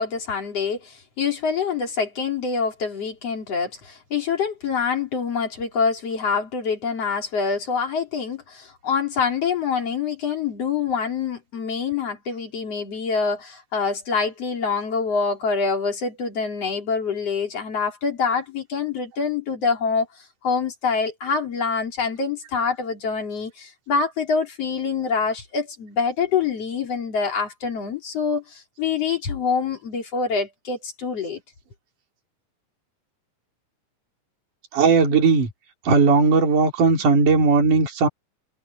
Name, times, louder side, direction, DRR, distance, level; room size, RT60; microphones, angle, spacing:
voice 1, 0.0-31.4, left 5 dB, 50° left, 4.1 m, -25 dB
voice 2, 34.7-35.5 35.8-38.1, right 4 dB, 65° right, 5.0 m, -17 dB
omnidirectional pair, 3.9 m